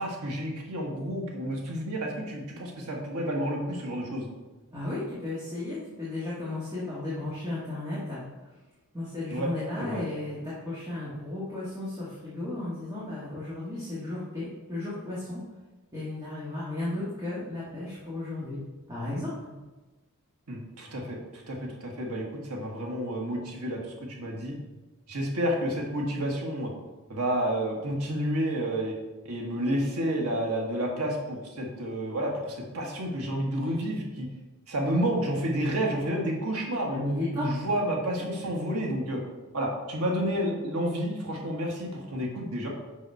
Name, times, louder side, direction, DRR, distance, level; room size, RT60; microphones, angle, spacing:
voice 1, 0.0-4.3 9.3-9.5 9.8-10.0 20.5-24.6 25.1-26.7 27.1-28.9 29.2-34.3 34.7-37.0 37.3-39.2 39.5-42.7, right 1 dB, 85° right, -1 dB, 1.4 m, -30 dB
voice 2, 4.7-8.2 8.9-15.4 15.9-18.6 18.9-19.4 36.9-37.4, left 2 dB, 15° right, -9 dB, 1.5 m, -34 dB
5.9 x 5.4 x 4.5 m, 1.2 s
head